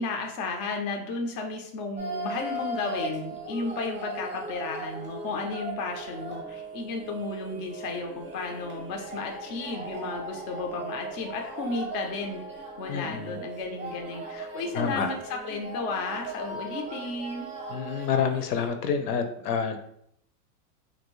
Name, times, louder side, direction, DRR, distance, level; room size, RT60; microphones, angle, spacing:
voice 1, 0.0-12.4 12.8-17.5, left 3 dB, 35° left, 2 dB, 0.4 m, -33 dB
sound 1, 2.0-18.7, right 1 dB, 15° right, 0.6 m, -38 dB
voice 2, 12.9-13.4 14.7-15.1 17.7-19.8, left 6 dB, 70° left, 7 dB, 0.7 m, -28 dB
3.0 x 2.6 x 3.0 m, 0.72 s
supercardioid pair, 140°, 47 cm